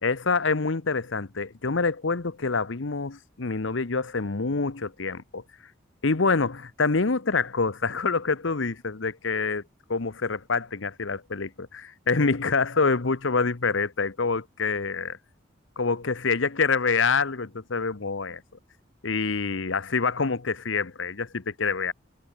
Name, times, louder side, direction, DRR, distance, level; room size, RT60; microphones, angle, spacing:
voice 1, 0.0-5.4 6.0-9.6 9.9-15.2 15.8-18.4 19.0-21.9, left 4 dB, 75° left, 1.0 m, -26 dB
head